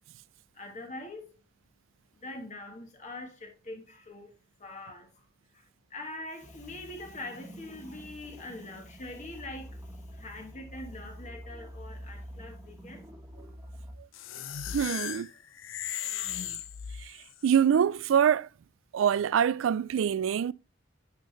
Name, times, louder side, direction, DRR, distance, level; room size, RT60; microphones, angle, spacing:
voice 1, 0.5-1.4 2.1-13.1, left 2 dB, 40° left, 1.3 m, -44 dB
sound 1, 6.4-14.0, equal, 15° right, 1.2 m, -46 dB
sound 2, 14.1-17.4, left 10 dB, 90° left, 0.6 m, -37 dB
voice 2, 14.7-15.3 17.0-17.2 17.4-18.5 18.9-20.5, right 8 dB, 80° right, 0.3 m, -25 dB
9.0 x 5.6 x 3.2 m
head